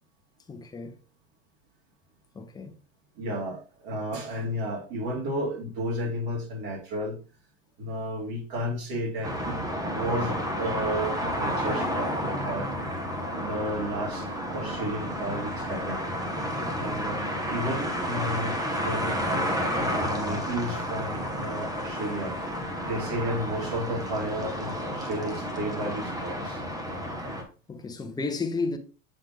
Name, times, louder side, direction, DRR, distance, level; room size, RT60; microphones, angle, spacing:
voice 1, 0.5-1.0 2.3-2.7 16.6-16.9 27.7-28.8, left 4 dB, 10° left, 0.8 m, -33 dB
voice 2, 3.1-7.2 7.8-9.5 9.9-12.7 13.3-16.0 16.8-17.2 17.5-19.5 19.8-22.3 22.8-26.6, equal, 55° right, 3.2 m, -32 dB
sound 1, 9.2-27.4, equal, 10° right, 1.1 m, -31 dB
7.7 x 3.6 x 3.5 m
supercardioid pair, 125°, 37 cm